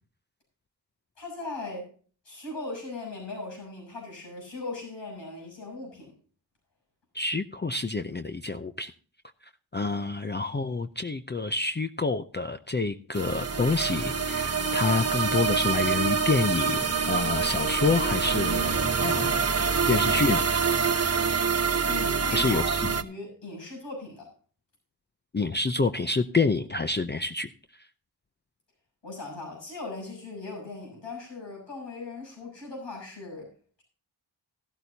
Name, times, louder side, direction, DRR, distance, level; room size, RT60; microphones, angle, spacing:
voice 1, 1.2-1.9 2.2-6.1 21.9-24.3 29.0-33.5, left 3 dB, 85° left, 0 dB, 6.7 m, -39 dB
voice 2, 7.1-8.9 9.7-19.5 19.9-20.4 22.3-22.8 25.3-27.5, left 3 dB, 25° left, 9 dB, 0.5 m, -28 dB
sound 1, 13.1-23.0, right 5 dB, 35° right, 0.8 m, -26 dB
14.0 x 12.5 x 2.8 m, 0.41 s
wide cardioid pair, 70°, 43 cm